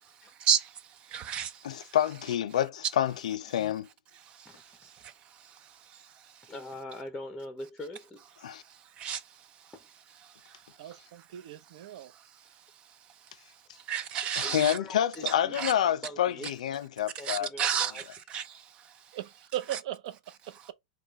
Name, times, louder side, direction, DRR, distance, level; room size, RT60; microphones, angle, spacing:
voice 1, 0.5-2.0 4.2-5.7 6.3-6.5 8.7-9.2 9.6-9.7 10.2-10.6 13.8-14.8 15.3-15.7 17.2-19.2, right 8 dB, 30° right, 0.4 m, -33 dB
voice 2, 1.6-3.9 8.4-8.6 14.4-17.5, left 10 dB, 80° left, 0.6 m, -28 dB
voice 3, 4.5-5.0 6.5-8.3 9.7-9.8 14.4-15.7 16.0-16.5 17.2-18.0, left 1 dB, 5° left, 0.7 m, -43 dB
voice 4, 10.8-12.1 19.1-20.7, right 13 dB, 60° right, 0.7 m, -38 dB
4.9 x 2.3 x 4.5 m
supercardioid pair, 145°, 4 cm